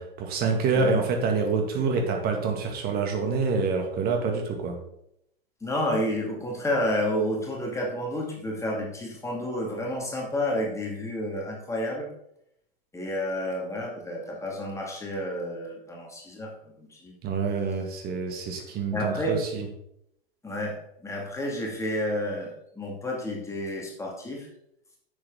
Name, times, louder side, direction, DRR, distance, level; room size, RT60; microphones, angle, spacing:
voice 1, 0.0-4.8 17.2-19.7, right 4 dB, 30° right, 3 dB, 2.1 m, -27 dB
voice 2, 5.6-12.1 12.9-17.2 18.9-19.4 20.4-24.5, left 1 dB, 10° left, -1 dB, 2.2 m, -30 dB
9.8 x 7.2 x 3.8 m, 0.76 s
figure-of-eight pair, 95°, 31 cm